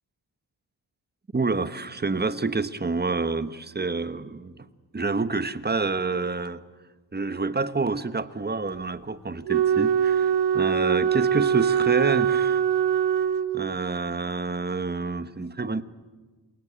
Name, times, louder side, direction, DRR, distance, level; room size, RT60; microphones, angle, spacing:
voice 1, 1.3-4.6 4.9-6.6 7.1-12.7 13.5-15.8, right 3 dB, 25° right, 13 dB, 1.2 m, -28 dB
Wind instrument woodwind instrument, 9.4-13.9, right 8 dB, 75° right, 1.0 m, -23 dB
29.0 x 18.0 x 8.8 m, 1.3 s
wide cardioid pair, 120°, 41 cm